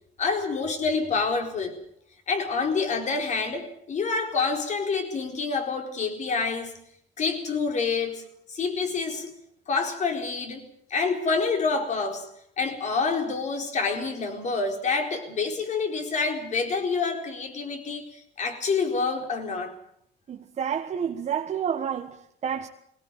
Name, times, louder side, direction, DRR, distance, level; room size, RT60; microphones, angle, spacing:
voice 1, 0.2-1.8 2.3-6.7 7.2-8.2 8.5-9.3 9.7-12.3 12.6-19.7, left 4 dB, 45° left, 4.4 m, -27 dB
voice 2, 20.3-22.7, right 8 dB, 40° right, 1.4 m, -29 dB
21.5 x 17.5 x 9.1 m
cardioid pair, 110°, 17 cm